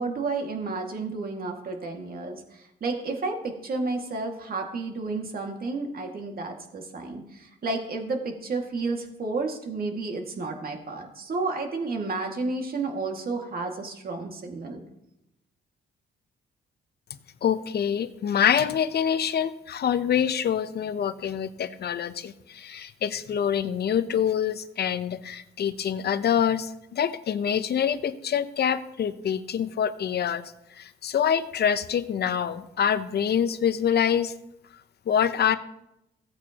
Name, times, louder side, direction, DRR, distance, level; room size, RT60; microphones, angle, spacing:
voice 1, 0.0-14.8, right 3 dB, 50° right, 2 dB, 2.0 m, -31 dB
voice 2, 17.4-34.3 35.1-35.6, left 8 dB, 55° left, 12 dB, 0.8 m, -26 dB
16.0 x 8.7 x 2.9 m, 0.85 s
cardioid pair, 90°, 20 cm